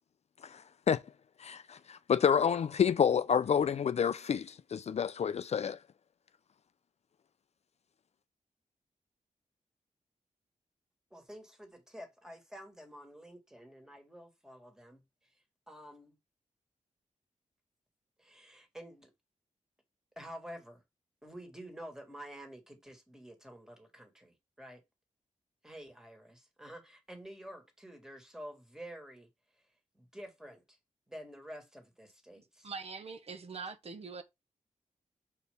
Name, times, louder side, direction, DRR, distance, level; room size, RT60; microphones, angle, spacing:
voice 1, 1.4-5.8, left 7 dB, 55° left, 0.4 m, -29 dB
voice 2, 11.1-15.0 15.7-16.1 18.2-19.1 20.1-20.8 21.2-24.8 25.6-29.3 29.9-30.8 31.1-32.7, equal, 5° right, 1.7 m, -49 dB
voice 3, 32.6-34.2, right 4 dB, 50° right, 0.9 m, -43 dB
6.6 x 4.4 x 3.5 m
wide cardioid pair, 135°, 13 cm